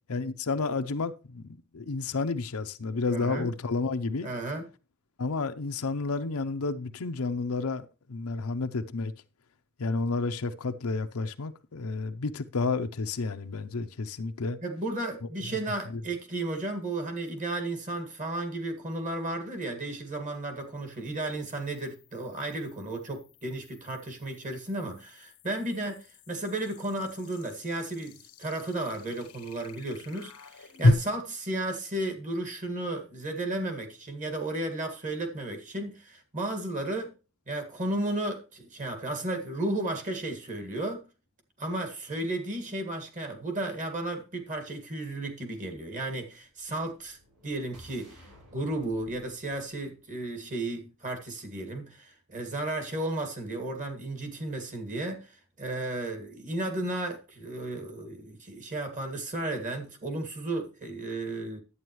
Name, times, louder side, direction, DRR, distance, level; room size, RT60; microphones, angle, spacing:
voice 1, 0.1-4.3 5.2-9.1 9.8-14.6, left 3 dB, 75° left, 0.7 m, -31 dB
voice 2, 3.1-3.5 4.2-4.7 14.6-37.1 37.5-41.0 41.6-47.2 47.4-61.6, right 2 dB, 35° right, 2.0 m, -34 dB
sound 1, 17.3-17.4 20.8-30.9, left 1 dB, 90° left, 1.0 m, -34 dB
sound 2, 46.6-50.8, equal, 80° right, 5.7 m, -56 dB
11.0 x 8.6 x 3.1 m
head